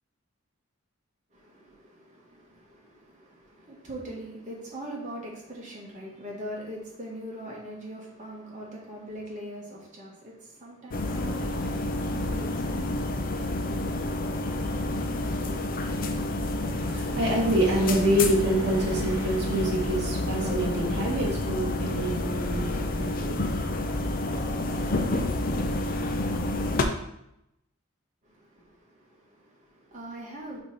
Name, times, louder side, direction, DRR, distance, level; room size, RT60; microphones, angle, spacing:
voice 1, 1.3-13.1 28.2-30.6, right 1 dB, 35° right, 1.7 m, -42 dB
sound 1, 10.9-26.8, left 2 dB, 40° left, 0.5 m, -29 dB
voice 2, 16.5-23.7 24.1-24.3, right 1 dB, 50° right, 1.2 m, -27 dB
5.2 x 4.3 x 4.9 m
head